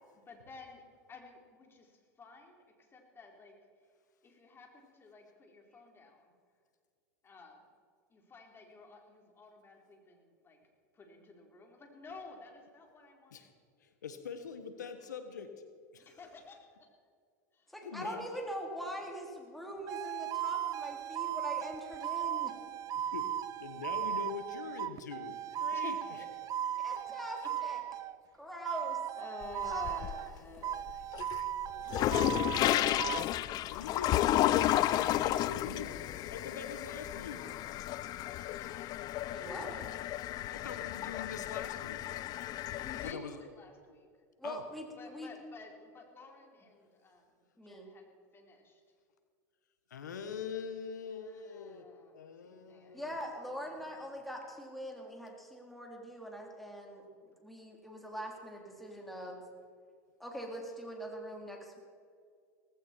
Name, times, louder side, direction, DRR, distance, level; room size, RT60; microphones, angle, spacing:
voice 1, 0.3-0.8 1.1-2.6 2.9-3.6 4.2-6.3 7.2-7.7 8.1-10.6 10.9-13.4 16.0-16.6 17.5-18.3 18.8-19.0 24.1-24.3 24.6-24.8 25.5-26.3 26.9-27.0 27.4-27.5 29.2-31.5 38.0-39.1 39.5-39.8 42.8-44.1 45.0-48.0 48.3-48.8 51.1-53.0, left 3 dB, 25° left, 1 dB, 4.1 m, -52 dB
voice 2, 13.8-15.5 15.9-16.1 17.8-18.3 22.9-23.3 23.6-26.2 32.2-33.4 33.6-35.9 36.3-37.5 40.5-42.0 43.0-43.4 44.4-44.6 49.9-51.9 52.1-53.1, left 6 dB, 90° left, 8 dB, 1.3 m, -43 dB
voice 3, 17.7-22.5 26.8-27.8 28.4-29.0 29.6-30.2 39.3-39.7 44.4-45.3 47.6-47.9 52.9-57.0 57.4-59.4 60.2-61.8, equal, ahead, 0 dB, 3.8 m, -43 dB
sound 1, 19.9-28.2 28.6-30.3 30.6-33.3, right 10 dB, 40° right, 0.6 m, -37 dB
sound 2, 29.4-30.4 30.8-43.1, left 14 dB, 45° left, 0.5 m, -32 dB
Tools, 32.3-32.8 35.3-35.9 38.3-38.8 41.3-41.8, left 7 dB, 70° left, 3.5 m, -64 dB
18.5 x 16.0 x 4.6 m, 2.1 s
hypercardioid pair, 95°, 9 cm